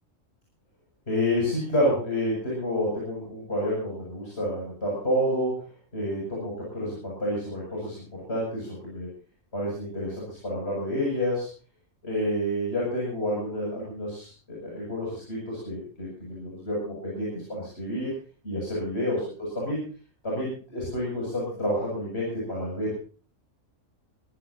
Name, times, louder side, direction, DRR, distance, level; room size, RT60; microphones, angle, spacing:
voice 1, 1.1-5.6 5.9-9.1 9.5-11.5 12.0-18.1 18.4-19.8 20.2-23.0, equal, 50° left, -5 dB, 8.2 m, -29 dB
24.5 x 16.5 x 2.9 m, 0.38 s
omnidirectional pair, 1.4 m